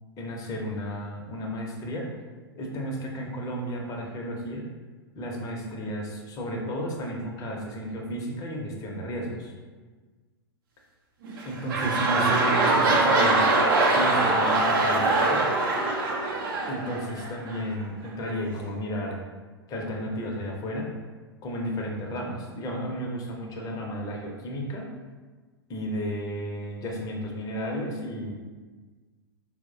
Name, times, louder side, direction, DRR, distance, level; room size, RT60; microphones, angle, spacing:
voice 1, 0.2-2.1 2.6-4.6 5.2-9.5 11.4-13.4 13.9-15.4 16.7-19.2 19.7-20.9 21.4-24.9 25.7-28.3, equal, 30° left, 0 dB, 0.6 m, -33 dB
sound 1, 11.2-17.6 18.3-18.4, right 2 dB, 55° right, 0.6 m, -23 dB
4.4 x 2.1 x 2.6 m, 1.4 s
figure-of-eight pair, 100°, 13 cm